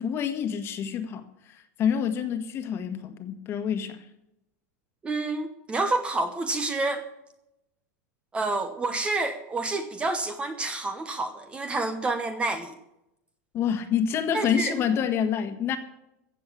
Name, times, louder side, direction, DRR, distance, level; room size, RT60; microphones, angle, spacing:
voice 1, 0.0-4.0 13.5-15.8, left 8 dB, 30° left, 9 dB, 1.7 m, -27 dB
voice 2, 5.0-7.0 8.3-12.7 14.3-14.8, right 2 dB, 15° right, 9 dB, 1.0 m, -28 dB
15.5 x 7.8 x 8.6 m, 0.84 s
supercardioid pair, 155°, 8 cm